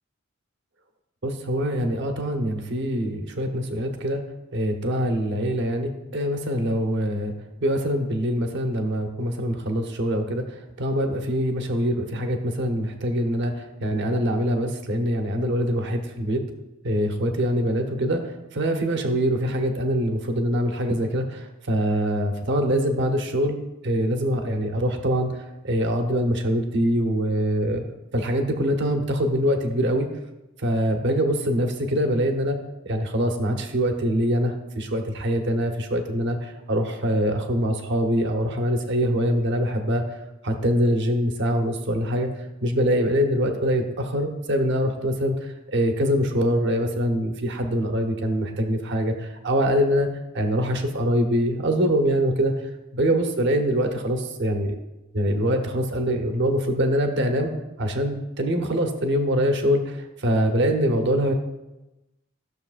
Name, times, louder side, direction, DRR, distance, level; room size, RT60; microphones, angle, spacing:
voice 1, 1.2-4.2 4.5-7.3 7.6-16.4 16.8-18.2 18.5-23.6 23.8-25.4 25.6-27.8 28.1-30.1 30.6-32.6 32.8-40.0 40.4-42.3 42.6-50.1 50.3-52.5 52.9-54.8 55.1-57.5 57.8-61.3, equal, 60° right, 4 dB, 0.9 m, -24 dB
13.5 x 6.6 x 2.5 m, 1.0 s
head